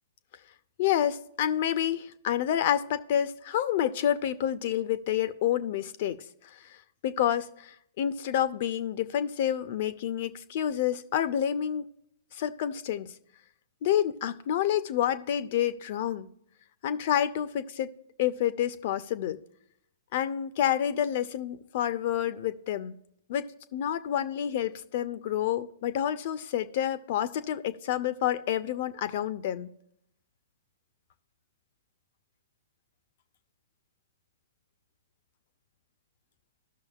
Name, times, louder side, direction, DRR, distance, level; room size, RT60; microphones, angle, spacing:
voice 1, 0.8-6.2 7.0-11.9 12.3-13.1 13.8-16.3 16.8-17.9 18.2-19.4 20.1-23.0 23.3-29.7, left 10 dB, 50° left, 13 dB, 0.6 m, -28 dB
15.0 x 6.3 x 2.4 m, 0.74 s
figure-of-eight pair, 115°, 0 cm